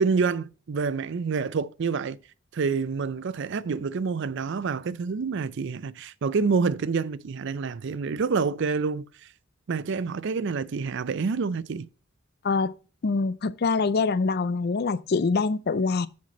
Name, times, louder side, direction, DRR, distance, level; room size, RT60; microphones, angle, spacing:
voice 1, 0.0-2.2 2.5-9.0 9.7-11.9, right 5 dB, 60° right, 0.4 m, -27 dB
voice 2, 13.0-16.1, left 4 dB, 50° left, 0.5 m, -24 dB
7.4 x 6.0 x 4.1 m
head